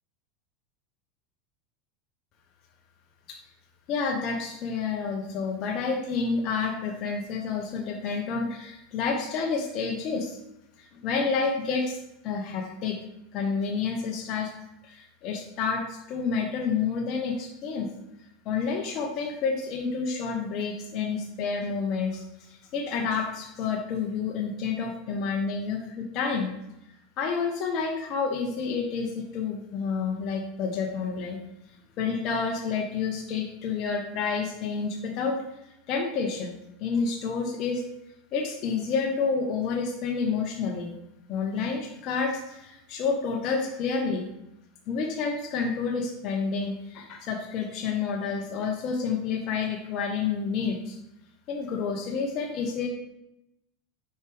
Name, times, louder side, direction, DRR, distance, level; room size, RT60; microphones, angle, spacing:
voice 1, 3.9-10.4 10.8-12.0 12.2-13.0 13.3-14.5 14.8-17.9 18.4-26.5 27.2-31.4 32.0-35.4 35.9-36.5 36.8-37.8 38.3-40.9 41.3-44.2 44.9-51.0 51.5-52.9, left 5 dB, 45° left, 0 dB, 0.9 m, -29 dB
6.5 x 4.7 x 3.4 m, 0.85 s
supercardioid pair, 125°, 0 cm